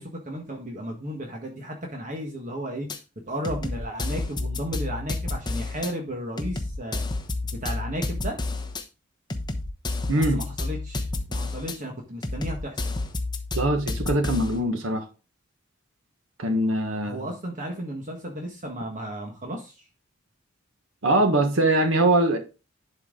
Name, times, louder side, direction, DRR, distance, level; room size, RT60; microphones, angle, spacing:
voice 1, 0.0-2.9 3.3-7.0 7.5-8.4 10.1-12.8 17.0-19.9, equal, 40° right, 1.5 m, -34 dB
sound 1, 2.9-3.0 3.4-5.9 6.4-8.8 9.3-11.8 12.2-14.6, left 2 dB, 20° left, 1.0 m, -30 dB
voice 2, 10.1-10.4 13.5-15.1 16.4-17.2 21.0-22.4, right 1 dB, 80° right, 1.4 m, -22 dB
11.0 x 4.5 x 3.8 m
head